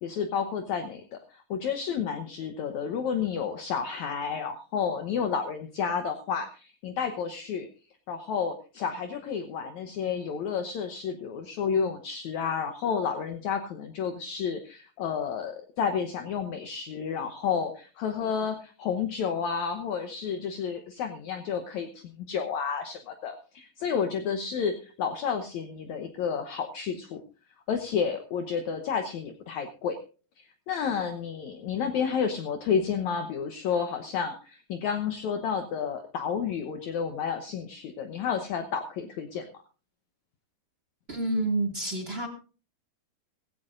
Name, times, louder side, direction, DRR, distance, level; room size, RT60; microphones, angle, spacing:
voice 1, 0.0-7.7 8.1-27.2 27.7-30.0 30.4-39.5, left 6 dB, 65° left, 6 dB, 2.0 m, -31 dB
voice 2, 41.1-42.3, right 2 dB, 20° right, 4 dB, 1.8 m, -28 dB
17.5 x 16.0 x 2.6 m, 0.36 s
omnidirectional pair, 4.1 m